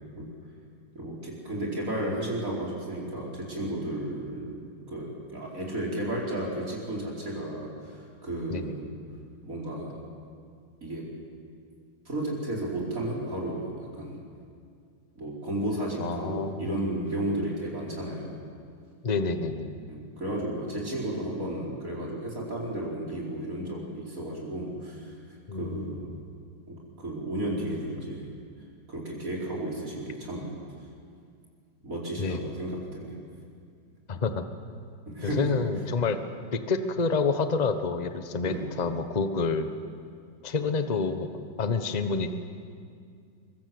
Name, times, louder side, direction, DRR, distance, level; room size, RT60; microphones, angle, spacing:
voice 1, 0.9-8.9 9.4-10.0 10.8-11.1 12.0-14.2 15.1-18.4 19.9-25.1 25.5-26.1 27.0-28.3 28.9-30.5 31.8-33.2 35.1-35.5 38.4-38.7, right 1 dB, 45° right, -3 dB, 5.1 m, -33 dB
voice 2, 16.0-16.8 19.0-19.8 25.5-26.0 32.2-32.5 34.1-34.4 35.2-36.2 36.5-39.7 40.4-41.3 41.6-42.3, left 4 dB, 25° left, 9 dB, 1.1 m, -28 dB
24.0 x 23.0 x 7.9 m, 2.3 s
omnidirectional pair, 2.1 m